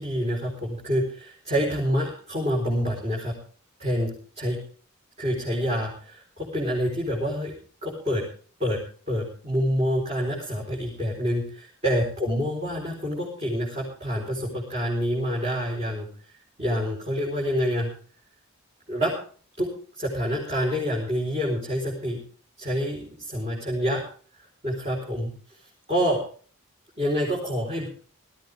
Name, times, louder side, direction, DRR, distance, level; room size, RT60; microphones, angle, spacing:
voice 1, 0.0-3.3 3.8-4.6 5.2-7.5 7.8-8.2 8.6-8.8 9.1-16.1 16.6-17.9 18.9-19.2 19.6-22.2 22.6-24.0 24.6-25.6 25.9-26.2 27.0-27.9, equal, 30° right, -5 dB, 4.4 m, -27 dB
19.5 x 14.0 x 3.6 m, 0.42 s
head